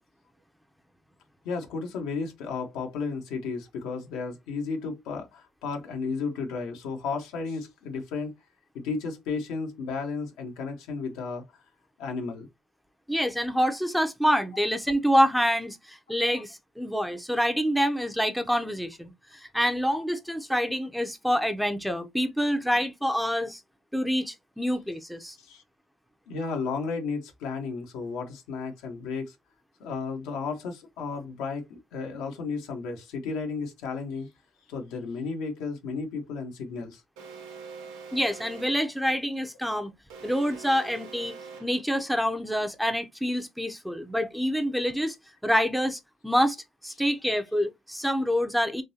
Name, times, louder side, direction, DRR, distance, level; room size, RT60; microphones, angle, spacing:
voice 1, 1.4-8.3 8.7-11.4 12.0-12.5 16.3-16.4 25.4-25.6 26.3-29.3 29.8-34.3 34.7-37.0, left 4 dB, 85° left, 1.1 m, -33 dB
voice 2, 13.1-23.6 23.9-25.4 38.1-39.9 40.2-41.4 41.6-45.2 45.4-46.6 46.8-48.8, equal, ahead, 0.6 m, -26 dB
Alarm, 37.2-38.9 40.1-41.9, right 5 dB, 90° right, 0.8 m, -44 dB
3.8 x 2.6 x 2.7 m
supercardioid pair, 65°, 0 cm